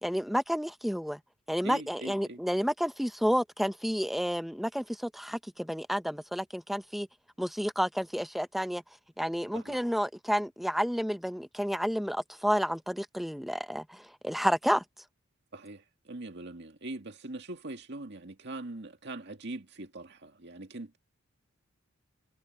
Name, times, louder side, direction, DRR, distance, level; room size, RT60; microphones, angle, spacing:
voice 1, 0.0-1.2 1.5-7.1 7.4-8.8 9.2-14.0 14.2-14.8, equal, ahead, 1.0 m, -30 dB
voice 2, 1.6-2.4 9.5-9.8 15.5-21.0, right 2 dB, 55° right, 2.1 m, -42 dB
head